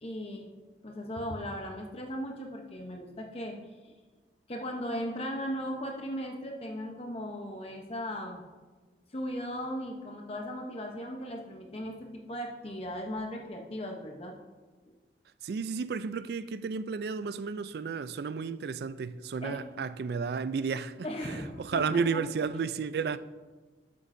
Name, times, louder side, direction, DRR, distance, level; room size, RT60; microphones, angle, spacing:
voice 1, 0.0-0.5 0.8-3.6 3.8-3.9 4.5-8.4 9.1-14.4 19.4-19.6 21.0-22.2, equal, 35° left, 0.8 m, -37 dB
voice 2, 15.4-21.1 21.6-23.2, right 5 dB, 60° right, 0.3 m, -32 dB
12.0 x 8.3 x 2.6 m
head